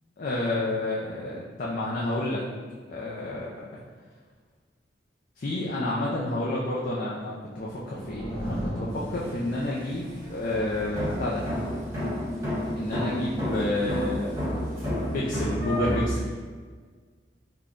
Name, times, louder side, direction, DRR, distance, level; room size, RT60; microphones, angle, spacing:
voice 1, 0.2-2.4 2.9-3.5 5.4-11.4 12.8-14.4 14.9-16.3, left 1 dB, 50° left, -5 dB, 0.4 m, -30 dB
sound 1, 7.3-9.9, equal, 5° left, 1.5 m, -36 dB
sound 2, 8.9-16.1, left 1 dB, 15° right, 1.3 m, -31 dB
3.5 x 2.2 x 3.7 m, 1.5 s
head